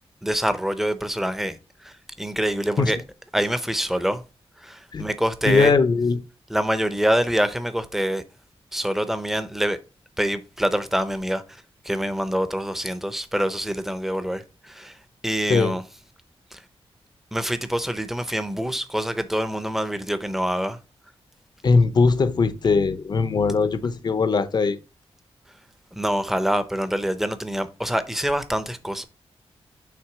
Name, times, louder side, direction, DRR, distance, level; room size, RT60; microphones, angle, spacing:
voice 1, 0.2-1.6 1.8-3.0 3.3-4.2 4.6-5.7 6.5-8.2 8.7-9.8 10.2-11.4 11.8-14.9 15.2-15.8 16.5-16.6 17.3-20.8 26.0-29.0, equal, 5° right, 0.6 m, -25 dB
voice 2, 5.5-6.2 15.5-15.7 21.6-24.8, left 4 dB, 45° left, 0.6 m, -20 dB
5.9 x 3.6 x 4.6 m
wide cardioid pair, 150°, 10 cm